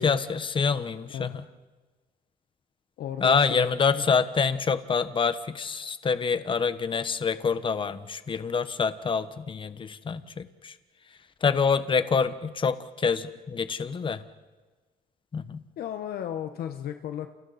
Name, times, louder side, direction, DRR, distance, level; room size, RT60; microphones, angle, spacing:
voice 1, 0.0-1.3 3.2-10.7 11.4-14.2 15.3-15.6, left 5 dB, 30° left, 12 dB, 1.2 m, -26 dB
voice 2, 1.1-1.5 3.0-3.7 4.0-4.1 15.8-17.3, left 10 dB, 65° left, 7 dB, 1.2 m, -34 dB
29.5 x 29.5 x 4.3 m, 1.3 s
cardioid pair, 110°, 17 cm